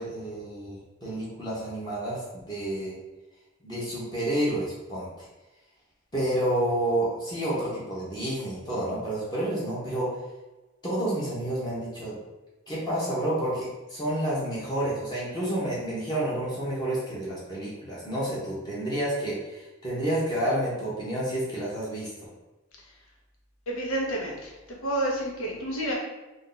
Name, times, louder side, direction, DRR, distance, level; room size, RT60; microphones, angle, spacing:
voice 1, 0.0-2.9 3.6-5.2 6.1-10.1 10.8-12.2 12.7-22.1, right 1 dB, 20° left, -8 dB, 0.8 m, -29 dB
voice 2, 23.7-25.9, right 1 dB, 90° left, -2 dB, 0.8 m, -30 dB
2.5 x 2.3 x 3.8 m, 1.1 s
head